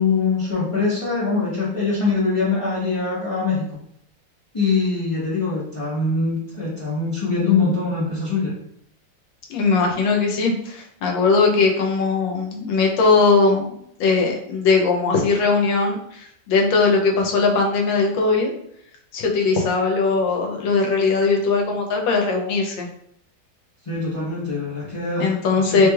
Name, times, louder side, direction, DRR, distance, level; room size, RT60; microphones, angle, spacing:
voice 1, 0.0-3.6 4.5-8.5 23.9-25.4 25.8-25.9, left 4 dB, 45° left, -8 dB, 0.4 m, -23 dB
voice 2, 9.5-18.5 19.1-22.9 25.2-25.9, left 4 dB, 90° left, 1 dB, 1.4 m, -19 dB
3.2 x 3.1 x 2.3 m, 0.71 s
omnidirectional pair, 2.0 m